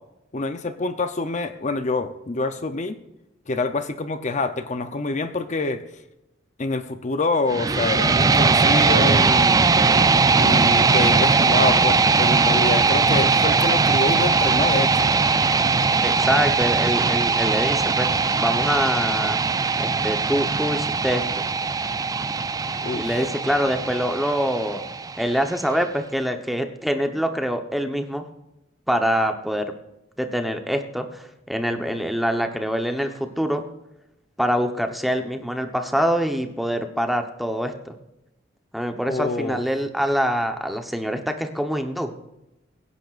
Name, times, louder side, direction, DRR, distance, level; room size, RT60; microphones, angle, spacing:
voice 1, 0.3-3.0 3.5-5.8 6.6-9.7 10.4-15.1 22.8-23.1 39.1-39.6, left 3 dB, 40° left, 9 dB, 0.7 m, -26 dB
sound 1, 7.5-25.5, right 4 dB, 20° right, 0.4 m, -20 dB
voice 2, 16.0-19.4 19.8-21.2 22.9-24.8 25.2-28.3 28.9-29.7 30.2-33.6 34.4-38.0 38.7-42.1, equal, ahead, 5 dB, 1.0 m, -25 dB
23.5 x 10.5 x 2.5 m, 0.92 s
head